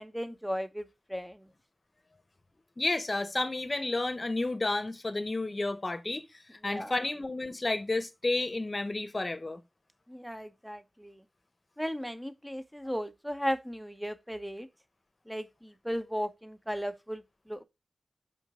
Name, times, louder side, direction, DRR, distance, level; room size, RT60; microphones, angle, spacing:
voice 1, 0.0-1.4 6.6-6.9 10.1-11.2 11.8-14.7 15.3-17.6, equal, ahead, 0.9 m, -36 dB
voice 2, 2.8-6.3 6.6-9.6, left 2 dB, 35° left, 1.0 m, -31 dB
6.0 x 5.2 x 3.7 m
wide cardioid pair, 80°, 0 cm